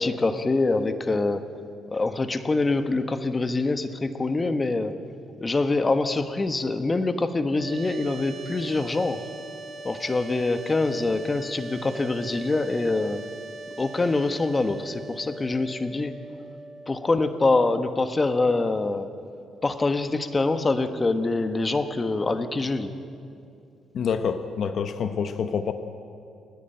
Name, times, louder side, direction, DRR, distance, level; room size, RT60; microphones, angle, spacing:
voice 1, 0.0-1.6 1.9-4.9 5.4-9.2 9.8-13.2 13.8-16.2 16.9-19.2 19.6-22.9, left 3 dB, 25° left, 9 dB, 1.2 m, -25 dB
sound 1, 7.5-18.6, right 2 dB, 45° right, 1.4 m, -41 dB
voice 2, 23.9-25.7, left 6 dB, 60° left, 9 dB, 0.9 m, -27 dB
29.0 x 10.0 x 9.0 m, 2.5 s
cardioid pair, 90°, 0 cm